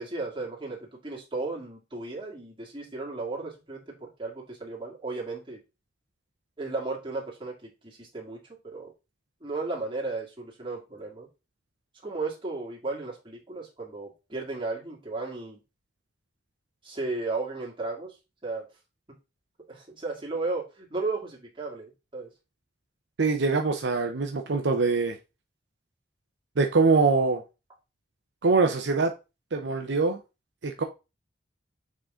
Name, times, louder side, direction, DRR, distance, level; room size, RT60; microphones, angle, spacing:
voice 1, 0.0-5.6 6.6-8.9 9.4-11.3 12.0-15.6 16.8-18.2 18.4-18.7 19.7-22.3, right 3 dB, 25° right, 2.2 m, -34 dB
voice 2, 23.2-25.2 26.6-27.4 28.4-29.1 29.5-30.2 30.6-30.8, right 4 dB, 70° right, 0.7 m, -23 dB
7.3 x 3.9 x 3.7 m
head